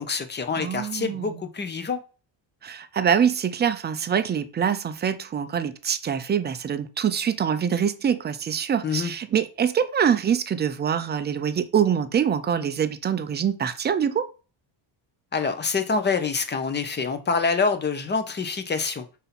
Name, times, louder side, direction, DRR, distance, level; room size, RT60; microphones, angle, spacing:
voice 1, 0.0-2.0 8.8-9.1 15.3-19.0, left 5 dB, 20° left, 0.7 m, -26 dB
voice 2, 0.5-1.4 2.6-14.3, right 8 dB, 25° right, 0.4 m, -24 dB
5.5 x 4.0 x 4.2 m
cardioid pair, 145°, 49 cm